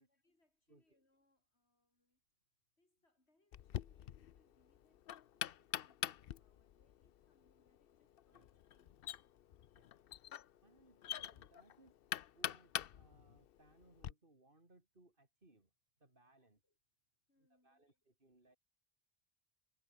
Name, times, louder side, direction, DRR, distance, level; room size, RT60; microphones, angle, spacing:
voice 1, 0.1-2.2 2.8-9.2 10.8-11.1 11.5-11.6 13.1-13.3 16.4-16.8 17.3-18.4, left 2 dB, 85° left, 5.6 m, -80 dB
Knock, 3.5-14.1, left 11 dB, 65° left, 0.8 m, -46 dB
voice 2, 9.7-10.2 10.6-12.0 12.3-15.7 16.0-16.6 17.4-18.6, right 2 dB, 55° right, 4.3 m, -68 dB
omnidirectional pair, 1.1 m